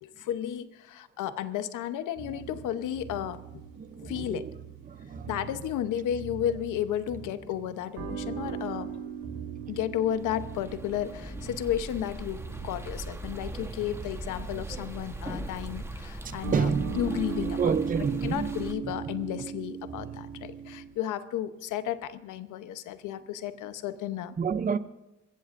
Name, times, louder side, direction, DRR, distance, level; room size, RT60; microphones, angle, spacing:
voice 1, 0.0-3.6 4.0-4.5 5.3-8.9 9.7-17.7 18.2-24.4, left 10 dB, 85° left, 0.9 m, -33 dB
sound 1, 2.2-20.9, right 7 dB, 75° right, 3.8 m, -39 dB
voice 2, 3.8-4.6 4.9-5.4 13.3-13.4 16.2-16.9 17.4-18.5 24.4-24.8, right 6 dB, 30° right, 0.6 m, -29 dB
sound 2, 10.0-18.7, right 1 dB, 10° right, 1.2 m, -40 dB
23.0 x 15.5 x 2.6 m
cardioid pair, 90°, 30 cm